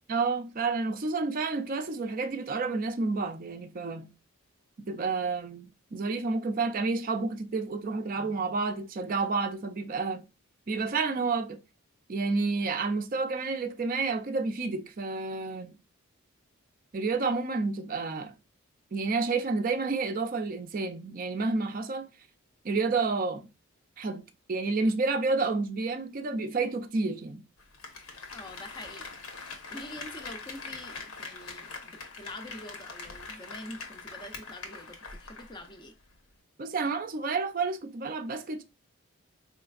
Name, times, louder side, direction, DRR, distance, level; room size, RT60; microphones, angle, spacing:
voice 1, 0.1-4.1 4.9-10.2 10.7-11.6 12.1-15.7 16.9-18.3 18.9-22.1 22.6-23.4 24.0-27.4 36.6-38.6, right 4 dB, 40° right, 0.4 m, -30 dB
Applause, 27.6-35.8 36.1-36.2, left 4 dB, 80° left, 1.1 m, -43 dB
voice 2, 28.3-29.2 29.5-36.0, left 1 dB, 20° left, 0.5 m, -45 dB
4.2 x 3.2 x 2.3 m
head